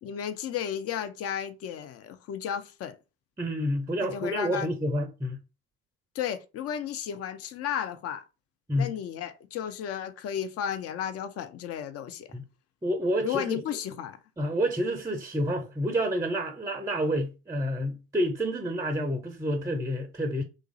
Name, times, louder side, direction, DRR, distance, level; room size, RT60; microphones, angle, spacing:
voice 1, 0.0-3.0 4.0-4.7 6.1-8.2 8.7-12.3 13.2-14.2, left 9 dB, 40° left, 0.6 m, -33 dB
voice 2, 3.4-5.4 8.7-8.9 12.3-12.4 12.8-13.6 14.4-20.4, equal, 10° right, 0.6 m, -29 dB
3.0 x 2.5 x 3.9 m
figure-of-eight pair, 60°, 35 cm